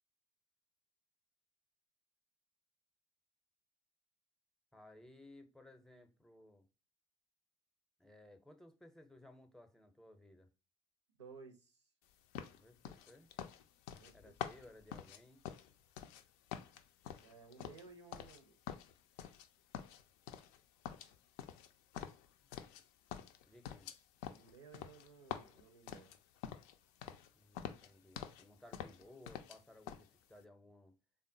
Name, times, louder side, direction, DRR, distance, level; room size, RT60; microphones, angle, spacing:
voice 1, 4.7-6.7 8.0-10.5 12.5-13.3 14.1-15.4 23.5-23.9 27.3-30.9, left 1 dB, 5° left, 0.6 m, -60 dB
voice 2, 11.2-11.8 13.9-14.6 17.2-18.6 24.3-26.1, right 5 dB, 80° right, 0.6 m, -57 dB
sound 1, 12.3-16.2 16.5-18.4 18.7-19.5 19.7-20.6 20.8-22.8 23.1-26.7 27.0-27.3 27.5-28.4 28.7-29.6 29.9-30.1, left 9 dB, 60° left, 0.4 m, -47 dB
3.5 x 2.0 x 2.6 m
figure-of-eight pair, 55°, 14 cm